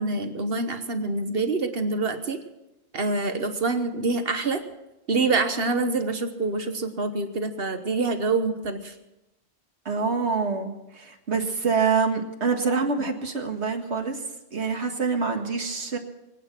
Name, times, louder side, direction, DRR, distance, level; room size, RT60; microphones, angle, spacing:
voice 1, 0.0-2.4 2.9-4.6 5.1-8.9, right 3 dB, 65° right, 8 dB, 1.3 m, -26 dB
voice 2, 9.9-14.2 14.5-16.0, right 5 dB, 85° right, 4 dB, 2.1 m, -26 dB
24.0 x 9.1 x 6.1 m, 0.96 s
omnidirectional pair, 1.1 m